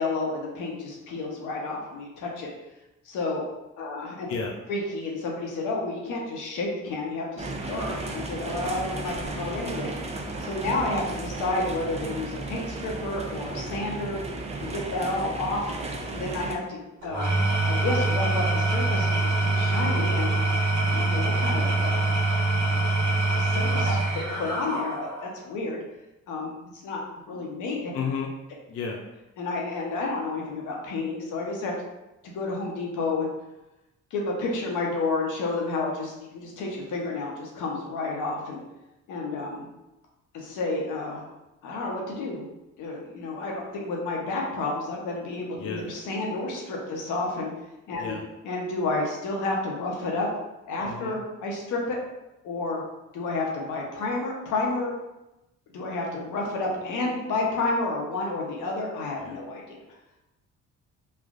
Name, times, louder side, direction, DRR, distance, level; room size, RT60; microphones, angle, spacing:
voice 1, 0.0-2.5 3.0-3.4 3.8-4.3 4.7-9.9 10.4-14.2 14.6-15.7 16.1-17.3 17.6-20.3 20.8-22.1 22.7-22.8 23.2-25.8 26.3-26.6 26.8-27.9 29.4-31.7 32.2-33.3 34.1-38.6 39.1-39.7 40.3-41.3 41.6-42.4 42.8-47.5 47.9-48.2 48.4-50.3 50.7-52.0 52.4-52.8 53.1-54.9 55.7-59.8, left 2 dB, 85° left, -1 dB, 0.8 m, -30 dB
sound 1, 7.4-16.6, right 2 dB, 20° right, 0.4 m, -34 dB
Engine / Tools, 17.0-25.3, right 2 dB, 70° right, 1.3 m, -24 dB
voice 2, 27.9-28.3 28.7-29.0 45.6-45.9 47.9-48.2 50.8-51.2 59.2-59.4, left 5 dB, 50° left, 0 dB, 0.5 m, -32 dB
3.2 x 2.4 x 2.4 m, 0.97 s
cardioid pair, 90°, 30 cm